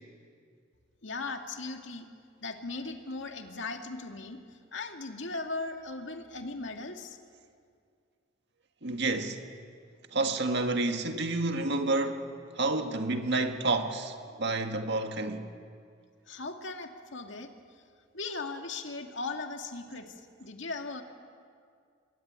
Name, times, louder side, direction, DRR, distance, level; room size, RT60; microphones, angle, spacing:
voice 1, 1.0-2.1 2.4-4.4 4.7-7.2 16.3-17.5 18.1-21.0, left 3 dB, 65° left, 2.2 m, -38 dB
voice 2, 8.8-9.4 10.1-15.5, right 2 dB, 60° right, 1.9 m, -30 dB
26.5 x 21.5 x 9.7 m
head